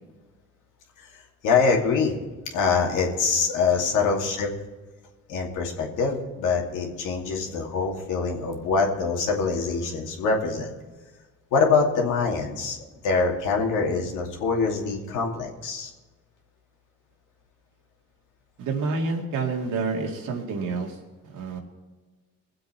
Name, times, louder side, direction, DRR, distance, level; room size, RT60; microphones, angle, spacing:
voice 1, 1.4-2.1 2.5-4.5 5.3-10.7 11.5-12.8 13.0-15.9, left 4 dB, 85° left, 0 dB, 2.5 m, -24 dB
voice 2, 18.6-21.0 21.3-21.6, right 4 dB, 85° right, 0 dB, 2.4 m, -28 dB
21.5 x 7.8 x 4.5 m, 1.3 s
cardioid pair, 90°, 30 cm